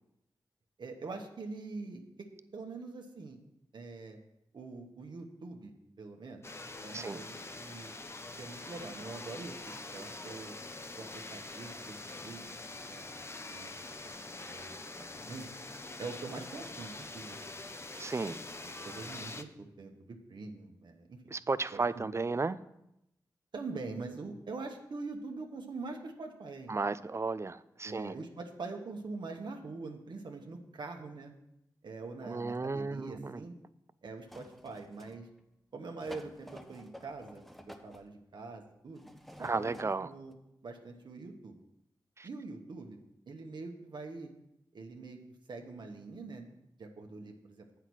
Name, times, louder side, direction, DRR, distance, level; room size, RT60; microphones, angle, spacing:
voice 1, 0.8-2.3 2.5-3.4 3.7-4.2 4.5-6.4 6.8-7.9 8.4-10.5 10.9-14.1 14.4-15.4 16.0-17.4 18.6-21.2 21.7-22.1 23.5-26.8 27.8-31.3 31.8-33.5 34.0-35.3 35.7-39.1 39.4-40.3 40.6-41.6 42.2-43.0 43.3-44.3 44.7-45.2 45.5-46.5 46.8-47.7, right 3 dB, 70° right, 3 dB, 1.2 m, -44 dB
pachinko tower, 6.4-19.4, left 2 dB, 30° left, 0.7 m, -45 dB
voice 2, 18.0-18.4 21.3-22.6 26.7-28.1 32.2-33.4 39.4-40.1 42.2-42.3, right 3 dB, 35° right, 16 dB, 0.4 m, -34 dB
sound 1, 34.3-35.4 36.0-38.1 39.0-39.9 40.3-40.4, equal, ahead, 0.9 m, -51 dB
7.9 x 5.8 x 6.1 m, 0.83 s
cardioid pair, 40°, 8 cm